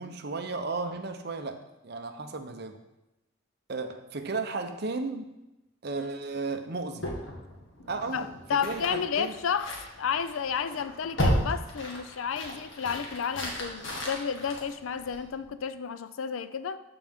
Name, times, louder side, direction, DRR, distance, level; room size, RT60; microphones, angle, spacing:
voice 1, 0.0-2.8 3.7-5.3 5.8-7.1 7.9-9.4, right 3 dB, 50° right, 0.7 m, -34 dB
sound 1, 7.0-15.4, equal, 70° left, 1.6 m, -34 dB
voice 2, 8.1-16.8, left 7 dB, 85° left, 0.5 m, -32 dB
13.0 x 4.7 x 3.6 m
head